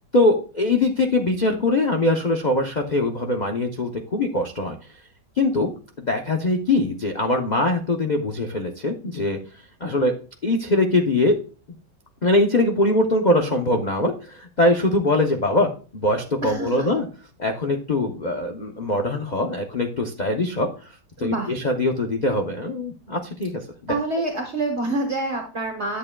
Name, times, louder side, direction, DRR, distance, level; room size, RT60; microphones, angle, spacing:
voice 1, 0.1-4.8 5.4-5.7 6.0-9.4 9.8-10.1 10.4-11.4 12.2-17.1 17.4-20.7 21.2-23.9, left 2 dB, 80° left, 3 dB, 0.4 m, -22 dB
voice 2, 16.4-16.9 21.2-21.5 23.9-26.0, right 2 dB, 40° right, 2 dB, 1.3 m, -26 dB
11.0 x 7.5 x 2.2 m, 0.37 s
omnidirectional pair, 1.9 m